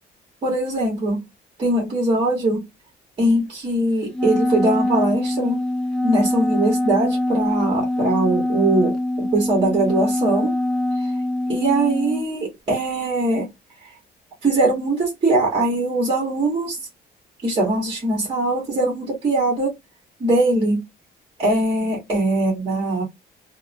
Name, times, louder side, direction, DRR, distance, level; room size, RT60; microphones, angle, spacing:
voice 1, 0.4-1.2 1.6-2.6 3.2-5.6 6.0-10.6 11.0-11.1 11.5-13.5 13.8-13.9 14.4-16.9 17.4-19.7 20.2-20.8 21.4-23.0, right 2 dB, 30° right, 1.2 m, -21 dB
Wind instrument woodwind instrument, 4.1-12.3, left 1 dB, 5° left, 0.5 m, -23 dB
2.8 x 2.1 x 2.5 m
cardioid pair, 170°, 19 cm